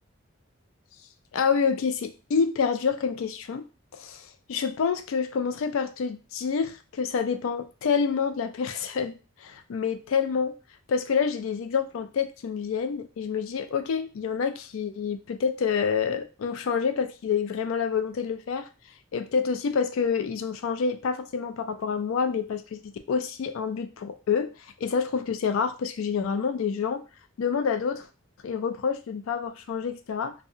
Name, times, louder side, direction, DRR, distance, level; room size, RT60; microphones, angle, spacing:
voice 1, 1.3-3.6 3.9-10.6 10.9-18.7 19.1-24.5 24.8-27.0 27.4-28.1 28.4-30.3, left 6 dB, 80° left, 8 dB, 0.3 m, -27 dB
2.5 x 2.0 x 2.7 m, 0.32 s
head